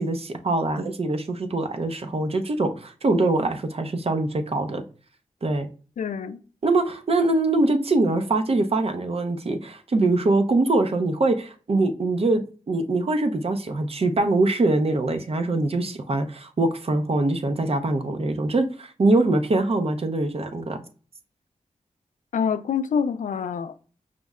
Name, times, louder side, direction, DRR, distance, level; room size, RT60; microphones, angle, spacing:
voice 1, 0.0-4.8 5.4-5.7 6.6-20.8, right 2 dB, 50° right, 0.6 m, -23 dB
voice 2, 6.0-6.4 22.3-23.8, left 6 dB, 75° left, 0.4 m, -26 dB
5.1 x 2.1 x 3.5 m
cardioid pair, 60°, 13 cm